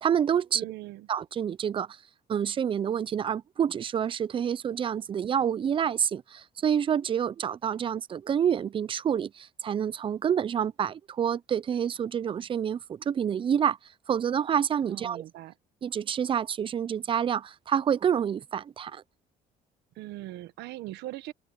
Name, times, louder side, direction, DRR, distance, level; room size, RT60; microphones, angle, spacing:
voice 1, 0.0-0.6 1.1-2.0 2.3-13.8 14.1-15.2 15.8-19.0, right 8 dB, 30° right, 0.4 m, -28 dB
voice 2, 0.5-1.1 14.9-15.5 19.9-21.3, right 16 dB, 85° right, 1.1 m, -40 dB
cardioid pair, 110°, 17 cm